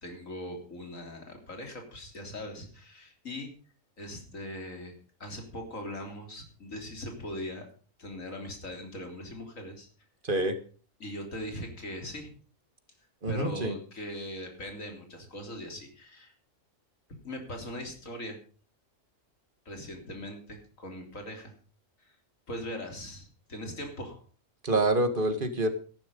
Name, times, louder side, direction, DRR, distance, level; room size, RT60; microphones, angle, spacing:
voice 1, 0.0-3.5 4.0-4.9 5.2-7.7 8.0-9.9 11.0-12.3 13.3-16.3 17.2-18.4 19.7-21.5 22.0-22.2 22.5-24.2, left 1 dB, 80° left, 4 dB, 3.9 m, -40 dB
voice 2, 10.2-10.6 13.2-13.7 24.6-25.7, right 2 dB, 40° right, 10 dB, 1.9 m, -26 dB
13.5 x 11.5 x 5.3 m, 0.39 s
omnidirectional pair, 1.4 m